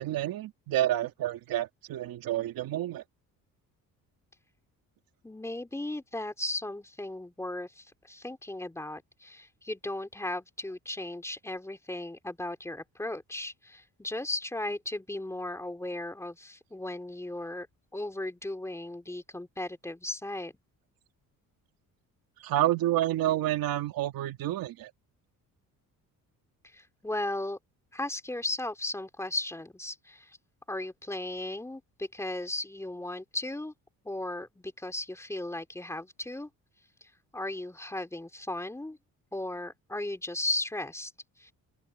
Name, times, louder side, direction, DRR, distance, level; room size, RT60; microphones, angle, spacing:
voice 1, 0.0-3.0 22.4-24.9, right 13 dB, 80° right, 2.4 m, -29 dB
voice 2, 5.2-17.7 17.9-20.5 26.6-27.6 27.9-30.4 30.7-33.7 34.0-36.5 37.0-39.0 39.3-41.1 41.4-41.5, left 2 dB, 10° left, 3.3 m, -36 dB
open air
cardioid pair, 130°, 35 cm